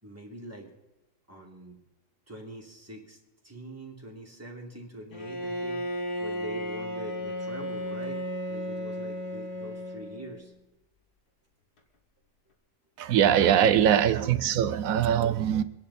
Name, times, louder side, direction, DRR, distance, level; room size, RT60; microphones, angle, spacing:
voice 1, 0.0-0.7 1.3-1.8 2.3-10.5 13.7-14.2, right 1 dB, 10° right, 2.9 m, -44 dB
Bowed string instrument, 5.1-10.5, equal, 70° left, 2.1 m, -34 dB
voice 2, 13.0-15.6, right 9 dB, 65° right, 1.1 m, -22 dB
24.5 x 10.5 x 4.2 m
omnidirectional pair, 1.7 m